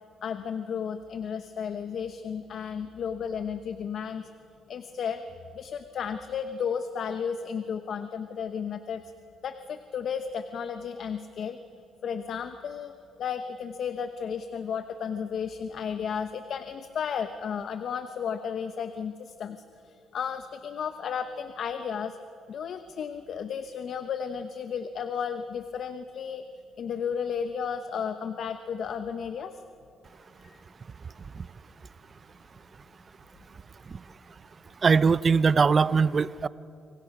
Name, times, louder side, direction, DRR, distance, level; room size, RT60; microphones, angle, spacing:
voice 1, 0.2-4.3 4.7-5.2 5.5-9.0 9.4-11.6 12.0-12.9 13.2-22.2 22.5-26.4 26.8-29.5, left 7 dB, 60° left, 9 dB, 0.9 m, -33 dB
voice 2, 34.8-36.5, right 5 dB, 40° right, 18 dB, 0.6 m, -21 dB
26.0 x 25.0 x 6.1 m, 2.7 s
cardioid pair, 90°, 0 cm